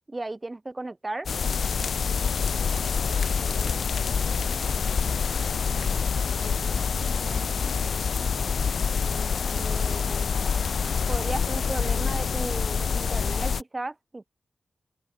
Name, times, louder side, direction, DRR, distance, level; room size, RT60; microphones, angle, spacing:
voice 1, 0.1-1.3 9.5-10.3 11.1-14.3, right 2 dB, 25° right, 1.2 m, -35 dB
sound 1, 1.3-13.6, left 6 dB, 80° left, 0.5 m, -26 dB
voice 2, 2.1-3.9 4.2-4.9 5.5-8.2, right 5 dB, 75° right, 5.9 m, -49 dB
open air
wide cardioid pair, 100°, 0 cm